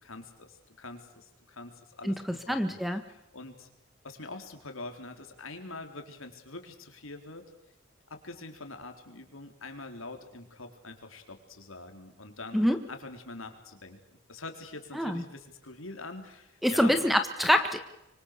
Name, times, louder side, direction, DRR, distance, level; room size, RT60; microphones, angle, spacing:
voice 1, 0.0-3.7 4.0-7.4 8.1-14.0 14.3-17.0, left 2 dB, 85° left, 6 dB, 4.2 m, -44 dB
voice 2, 2.5-3.0 12.5-12.8 14.9-15.2 16.6-17.8, equal, ahead, 9 dB, 1.6 m, -25 dB
25.5 x 25.0 x 6.8 m, 0.91 s
head